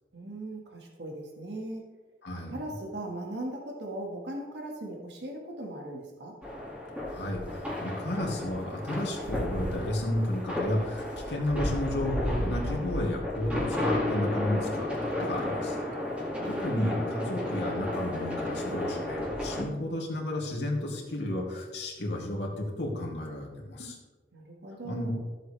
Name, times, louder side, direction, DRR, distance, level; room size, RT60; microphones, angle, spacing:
voice 1, 0.1-1.8 2.5-6.3 16.4-17.1 24.3-25.2, right 1 dB, 70° right, 0 dB, 1.8 m, -39 dB
voice 2, 2.2-2.6 7.1-15.7 16.4-24.0 24.8-25.1, left 1 dB, 75° left, -1 dB, 2.6 m, -32 dB
sound 1, 6.4-19.6, left 1 dB, 5° right, 2.1 m, -32 dB
14.5 x 7.9 x 3.4 m, 1.3 s
head